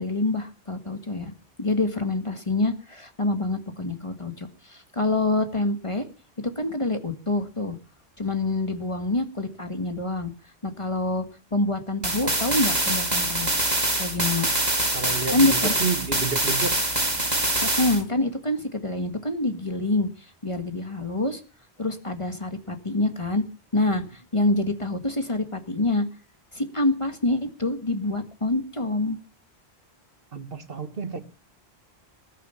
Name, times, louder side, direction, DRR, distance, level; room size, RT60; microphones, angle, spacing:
voice 1, 0.0-1.3 1.6-6.1 6.4-7.8 8.2-10.3 10.6-11.3 11.5-13.5 14.0-14.5 15.3-15.7 17.6-21.4 21.8-23.4 23.7-26.1 26.5-29.2, left 2 dB, 30° left, 1.7 m, -26 dB
sound 1, 12.0-18.0, right 1 dB, 40° right, 3.7 m, -24 dB
voice 2, 14.9-16.8 30.3-31.2, right 5 dB, 60° right, 1.6 m, -30 dB
20.5 x 9.2 x 5.6 m
omnidirectional pair, 1.1 m